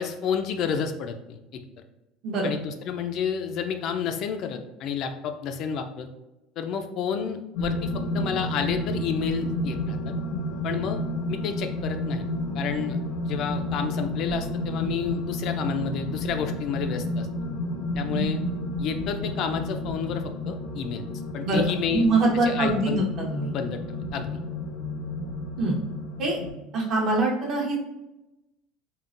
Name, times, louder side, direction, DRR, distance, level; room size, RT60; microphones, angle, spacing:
voice 1, 0.0-1.6 2.4-6.1 6.6-10.1 10.6-11.0 11.3-12.2 12.5-13.0 13.2-17.3 17.9-18.4 18.8-21.0 21.3-22.1 22.4-23.0 23.5-23.8 24.1-24.3, left 7 dB, 50° left, 6 dB, 0.3 m, -30 dB
sound 1, 7.6-26.5, left 1 dB, 85° left, 0.7 m, -31 dB
voice 2, 21.4-23.5 25.6-25.8 26.2-26.4 26.7-27.8, right 2 dB, 45° right, -1 dB, 0.8 m, -24 dB
3.7 x 2.1 x 2.4 m, 0.97 s
cardioid pair, 145°, 0 cm